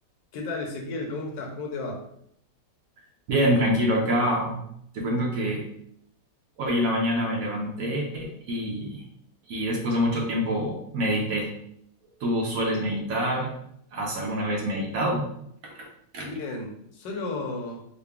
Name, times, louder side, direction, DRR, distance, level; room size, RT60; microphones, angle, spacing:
voice 1, 0.3-2.0 16.2-17.8, left 3 dB, 70° left, 1 dB, 1.3 m, -33 dB
voice 2, 3.3-4.6 4.9-5.7 6.6-9.0 9.5-11.5 12.2-13.5 13.9-15.3 15.6-15.9 16.1-16.3, equal, 65° right, -1 dB, 0.9 m, -26 dB
3.8 x 2.2 x 3.4 m, 0.71 s
omnidirectional pair, 2.2 m